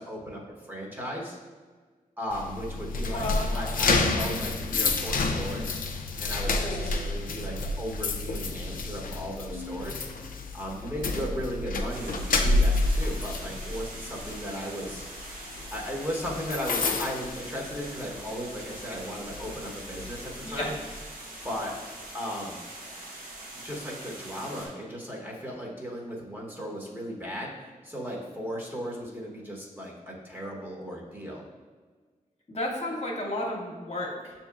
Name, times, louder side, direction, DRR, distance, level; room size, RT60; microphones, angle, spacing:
voice 1, 0.0-1.4 2.2-5.8 6.2-10.0 10.5-15.0 15.7-20.7 21.4-21.7 22.1-22.6 23.6-31.4, equal, 15° right, -3 dB, 1.0 m, -36 dB
sound 1, 2.3-18.2 18.6-18.8 19.3-21.0, left 3 dB, 65° left, 0.4 m, -29 dB
voice 2, 3.1-3.9 4.7-4.8 6.6-6.9 20.4-20.7 32.5-34.3, left 1 dB, 45° left, -3 dB, 0.9 m, -33 dB
sound 2, 11.9-24.7, right 1 dB, 70° right, 1.0 m, -43 dB
6.3 x 2.8 x 2.4 m, 1.4 s
cardioid pair, 45°, 15 cm